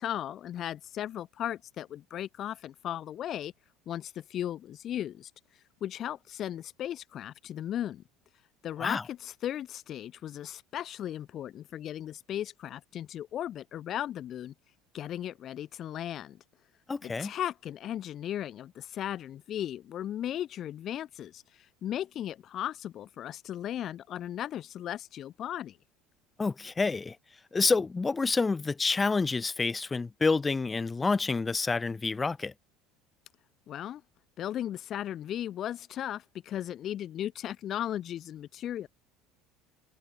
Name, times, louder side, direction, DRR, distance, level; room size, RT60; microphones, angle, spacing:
voice 1, 0.0-3.5 3.9-8.0 8.6-14.5 14.9-16.4 17.0-25.8 33.7-34.0 34.4-38.9, left 11 dB, 50° left, 1.7 m, -36 dB
voice 2, 16.9-17.3 26.4-27.2 27.5-32.5, left 4 dB, 20° left, 0.5 m, -28 dB
hypercardioid pair, 75°, 0 cm